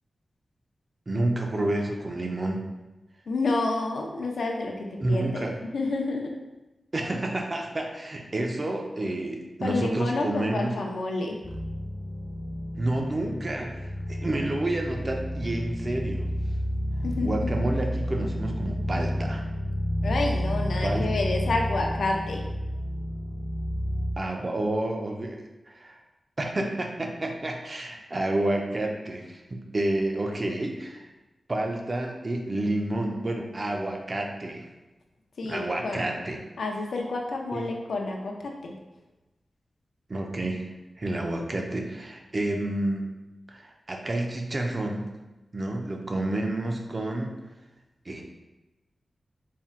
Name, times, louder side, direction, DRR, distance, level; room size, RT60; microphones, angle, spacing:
voice 1, 1.1-2.7 5.0-5.6 6.9-10.8 12.8-13.7 14.1-16.3 17.2-19.5 20.8-21.1 24.2-25.4 25.7-26.0 26.4-31.1 31.5-34.7 35.5-36.4 37.5-37.7 40.1-40.7 41.0-43.1 43.5-45.1 45.5-47.4 48.1-48.2, right 1 dB, 30° right, 2 dB, 0.5 m, -29 dB
voice 2, 3.3-6.3 9.6-11.4 17.0-17.5 20.0-22.4 35.4-36.1 36.6-38.7, left 3 dB, 85° left, 1 dB, 0.5 m, -29 dB
sound 1, 11.4-24.1, equal, 35° left, 0.4 m, -30 dB
4.3 x 2.1 x 3.6 m, 1.0 s
wide cardioid pair, 150°, 0 cm